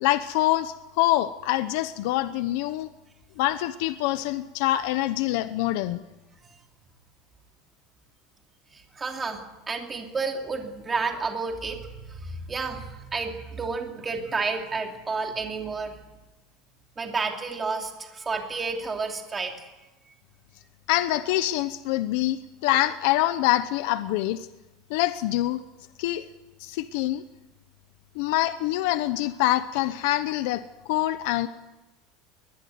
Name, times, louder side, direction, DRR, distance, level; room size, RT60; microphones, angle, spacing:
voice 1, 0.0-2.9 3.4-6.0 20.9-24.5 24.9-25.6 26.0-26.3 26.6-27.2 28.2-31.5, left 15 dB, 60° left, 12 dB, 0.9 m, -25 dB
voice 2, 8.7-16.0 17.0-19.7, right 4 dB, 15° right, 3 dB, 2.8 m, -31 dB
22.0 x 20.5 x 9.5 m, 1.0 s
cardioid pair, 175°, 0 cm